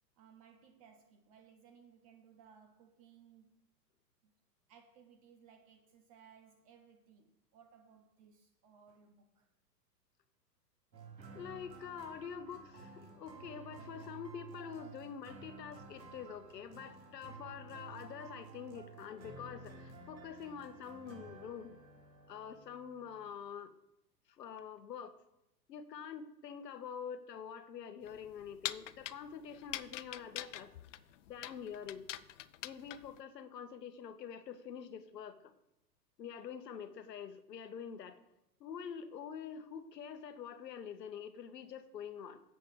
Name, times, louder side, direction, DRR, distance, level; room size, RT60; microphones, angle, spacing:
voice 1, 0.2-3.5 4.2-4.3 4.7-9.5, right 7 dB, 25° right, 0.5 m, -62 dB
sound 1, 10.9-23.2, right 4 dB, 85° right, 2.6 m, -53 dB
voice 2, 11.3-21.8 22.3-23.7 24.3-25.1 25.7-30.7 31.3-32.0 32.6-35.5 36.2-38.2 38.6-42.4, left 7 dB, 75° left, 1.1 m, -46 dB
sound 2, 28.0-33.2, left 14 dB, 50° left, 0.5 m, -44 dB
7.5 x 5.3 x 7.3 m
hypercardioid pair, 115°, 50 cm